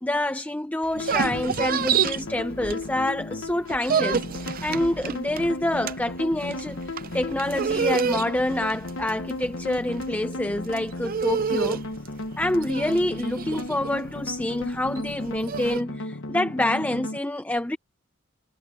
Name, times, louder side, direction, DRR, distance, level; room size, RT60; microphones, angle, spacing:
voice 1, 0.0-6.8 7.1-11.8 12.4-17.8, left 1 dB, 10° left, 0.6 m, -27 dB
sound 1, 0.8-3.2 3.5-15.8, right 6 dB, 45° right, 0.6 m, -29 dB
sound 2, 0.9-17.2, left 2 dB, 75° left, 1.3 m, -35 dB
head